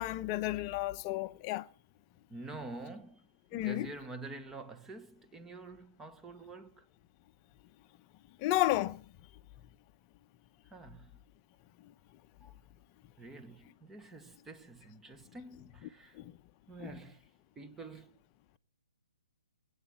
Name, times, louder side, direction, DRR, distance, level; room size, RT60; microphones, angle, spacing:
voice 1, 0.0-1.7 3.5-3.9 8.4-9.0 16.2-16.3 16.8-17.0, left 16 dB, 25° left, 0.9 m, -32 dB
voice 2, 2.3-6.8 10.7-11.1 12.4-12.5 13.2-16.2 16.7-17.2 17.6-18.1, right 3 dB, 10° right, 1.1 m, -47 dB
23.5 x 8.3 x 7.4 m
hypercardioid pair, 160°, 3 cm